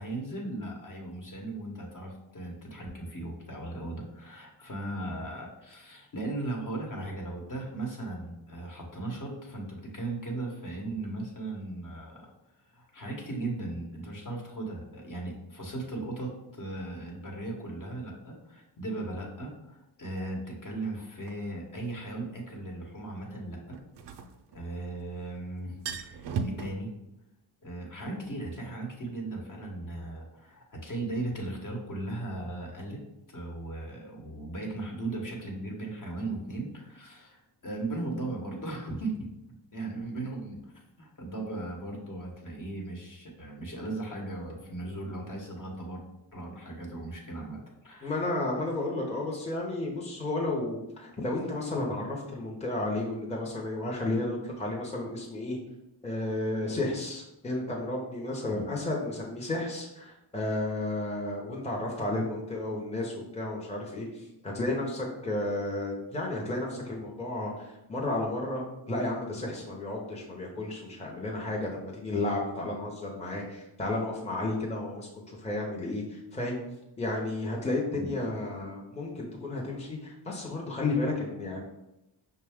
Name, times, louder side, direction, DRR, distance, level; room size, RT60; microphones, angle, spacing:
voice 1, 0.0-12.3 12.7-23.8 24.5-25.8 26.0-26.9 27.6-33.0 33.3-39.3 39.7-46.0 46.3-48.3 58.5-58.6 77.9-78.1, right 2 dB, 45° left, -1 dB, 1.1 m, -37 dB
sound 1, 21.3-21.4 23.7-25.0 25.3-25.4 25.7-26.7, right 5 dB, 65° right, 0.5 m, -35 dB
voice 2, 48.0-55.6 56.0-76.6 77.0-81.6, left 2 dB, 15° left, -2 dB, 0.8 m, -32 dB
5.5 x 2.2 x 3.5 m, 0.94 s
cardioid pair, 75°, 44 cm